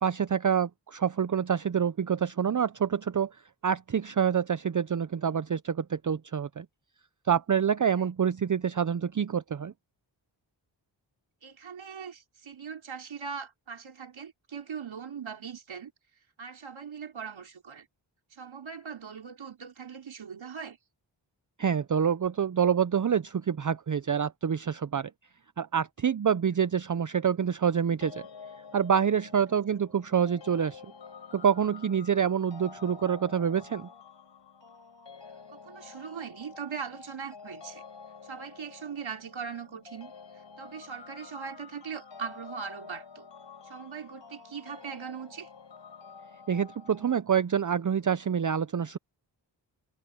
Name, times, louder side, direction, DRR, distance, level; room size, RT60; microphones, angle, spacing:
voice 1, 0.0-3.3 3.6-6.7 7.3-9.7 21.6-25.1 25.6-28.2 28.7-30.8 31.3-33.9 46.5-49.0, right 7 dB, 40° right, 0.7 m, -27 dB
voice 2, 11.4-15.9 16.4-17.9 18.3-20.8 26.5-26.6 35.5-37.8 38.2-43.3 43.6-45.5, right 6 dB, 85° right, 4.2 m, -40 dB
sound 1, 28.0-47.2, left 5 dB, 70° left, 4.6 m, -49 dB
cardioid pair, 50°, 46 cm